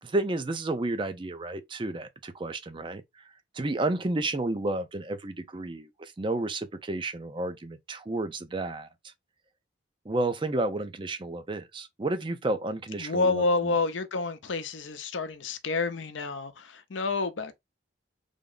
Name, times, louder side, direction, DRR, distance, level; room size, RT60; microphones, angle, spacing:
voice 1, 0.0-9.1 10.0-13.4, right 2 dB, 25° right, 0.5 m, -31 dB
voice 2, 13.0-17.6, left 3 dB, 85° left, 0.6 m, -29 dB
3.5 x 2.0 x 3.7 m
head